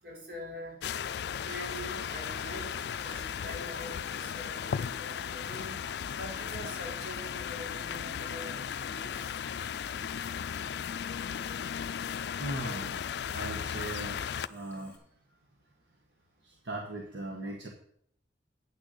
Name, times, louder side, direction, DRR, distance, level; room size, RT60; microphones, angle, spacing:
voice 1, 0.0-0.8 1.3-2.7 3.0-5.8 6.2-9.1, equal, 60° right, -2 dB, 4.9 m, -44 dB
sound 1, 0.8-14.5, left 8 dB, 65° left, 0.3 m, -36 dB
Water tap faucet / Sink (filling or washing), 1.3-15.0, left 3 dB, 10° left, 1.8 m, -59 dB
voice 2, 8.8-9.7 12.3-15.0 16.4-17.7, right 1 dB, 80° right, 1 dB, 1.4 m, -40 dB
9.1 x 6.5 x 6.6 m, 0.69 s
head